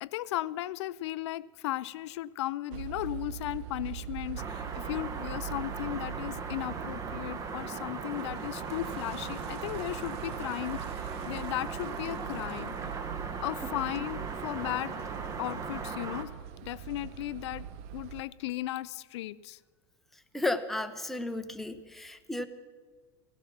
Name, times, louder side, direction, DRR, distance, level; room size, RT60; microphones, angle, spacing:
voice 1, 0.0-12.8 13.4-15.1 15.4-16.3 16.6-17.7 17.9-19.6, left 15 dB, 75° left, 17 dB, 0.4 m, -36 dB
sound 1, 2.7-18.2, right 9 dB, 45° right, 0.6 m, -42 dB
sound 2, 4.4-16.2, right 4 dB, 20° right, 1.0 m, -39 dB
Toilet flush, 8.0-14.0, right 9 dB, 65° right, 1.1 m, -51 dB
voice 2, 20.3-22.5, left 2 dB, ahead, 7 dB, 0.7 m, -33 dB
15.5 x 15.0 x 5.9 m, 1.5 s
supercardioid pair, 140°, 15 cm